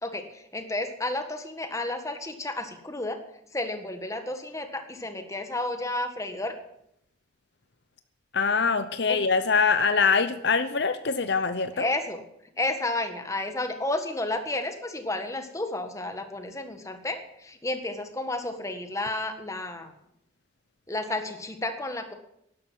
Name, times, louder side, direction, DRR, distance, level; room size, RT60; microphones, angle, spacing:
voice 1, 0.0-3.2 3.5-6.6 9.1-9.2 11.8-12.2 12.6-19.9 20.9-22.1, left 2 dB, 15° left, 7 dB, 1.5 m, -31 dB
voice 2, 8.3-11.9, left 5 dB, 60° left, 11 dB, 0.8 m, -24 dB
12.0 x 11.5 x 7.6 m, 0.77 s
head